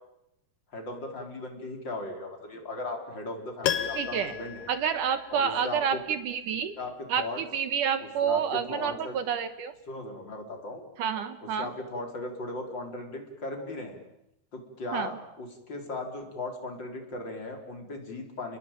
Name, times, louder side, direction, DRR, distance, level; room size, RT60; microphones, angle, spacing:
voice 1, 0.7-4.7 5.3-6.0 6.7-7.4 8.0-9.2 9.9-10.8 11.4-14.0 14.5-18.6, left 2 dB, 30° left, 3 dB, 4.5 m, -37 dB
Piano, 3.6-5.7 6.0-6.1, left 10 dB, 65° left, 2.5 m, -33 dB
voice 2, 4.0-4.3 4.7-6.7 7.1-9.7 11.0-11.7 14.9-15.1, right 8 dB, 65° right, 11 dB, 2.5 m, -29 dB
29.5 x 21.5 x 9.0 m, 0.84 s
omnidirectional pair, 4.6 m